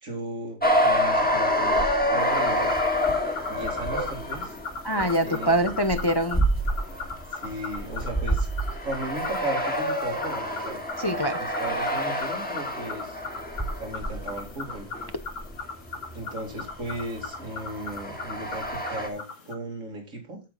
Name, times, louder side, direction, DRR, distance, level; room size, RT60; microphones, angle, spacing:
voice 1, 0.0-2.8 3.5-4.6 5.2-5.8 7.3-8.5 8.8-10.8 11.4-13.2 13.8-14.9 16.1-20.4, right 1 dB, 85° right, 1 dB, 2.9 m, -36 dB
sound 1, 0.6-16.2 16.5-19.1, equal, 5° left, 1.6 m, -28 dB
sound 2, 2.2-19.5, left 4 dB, 70° left, 1.9 m, -39 dB
voice 2, 4.8-6.5 11.0-11.4, right 1 dB, 25° left, 8 dB, 0.5 m, -24 dB
8.5 x 8.1 x 3.9 m, 0.27 s
omnidirectional pair, 1.3 m